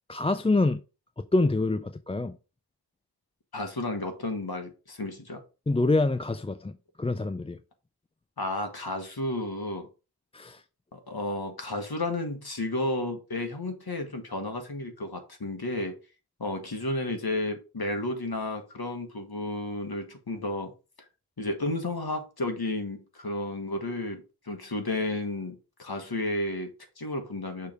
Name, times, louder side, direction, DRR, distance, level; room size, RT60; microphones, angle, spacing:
voice 1, 0.1-0.8 1.2-2.4 5.7-7.6 10.3-10.6, left 2 dB, 15° left, 0.3 m, -26 dB
voice 2, 3.5-5.4 8.4-9.9 10.9-16.0 16.4-20.7 21.4-27.7, left 2 dB, 60° left, 1.4 m, -32 dB
6.7 x 3.4 x 5.0 m
wide cardioid pair, 50°, 43 cm